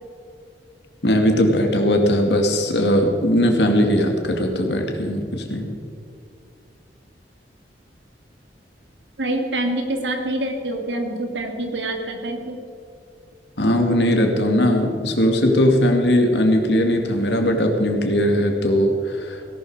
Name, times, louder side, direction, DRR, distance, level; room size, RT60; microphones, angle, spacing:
voice 1, 1.0-5.7 13.6-19.5, equal, 70° left, 3 dB, 2.2 m, -19 dB
voice 2, 9.2-12.6, right 1 dB, 85° right, 4 dB, 2.3 m, -26 dB
17.5 x 12.0 x 4.9 m, 2.4 s
head